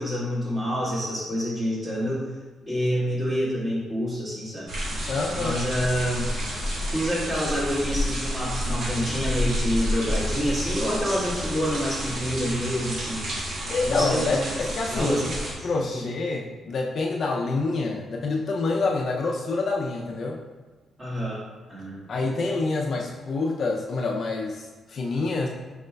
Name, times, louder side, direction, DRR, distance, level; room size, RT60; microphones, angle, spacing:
voice 1, 0.0-2.2 2.7-5.1 5.4-6.3 6.9-13.2 13.8-15.2 15.6-16.0 21.0-21.4 21.7-22.1, equal, 20° right, -7 dB, 1.4 m, -27 dB
sound 1, 4.7-15.5, equal, 55° right, 1.1 m, -30 dB
voice 2, 5.0-5.6 13.7-15.3 15.6-20.4 22.1-25.5, left 3 dB, 45° left, -1 dB, 0.4 m, -27 dB
5.1 x 4.7 x 2.2 m, 1.3 s
cardioid pair, 165°, 0 cm